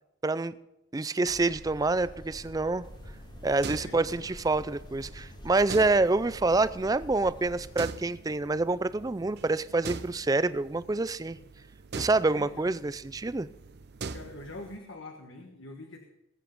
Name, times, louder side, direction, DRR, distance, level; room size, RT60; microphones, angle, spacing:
voice 1, 0.2-0.5 0.9-2.9 3.4-11.4 12.0-13.5, right 3 dB, 20° right, 16 dB, 0.4 m, -27 dB
sound 1, 1.3-7.8, left 1 dB, 20° left, 0.7 m, -47 dB
sound 2, 2.8-14.8, right 4 dB, 55° right, 0.6 m, -44 dB
voice 2, 3.7-4.3 12.2-12.7 14.1-16.0, left 2 dB, 80° left, 3 dB, 1.4 m, -44 dB
19.5 x 8.2 x 5.2 m, 0.89 s
head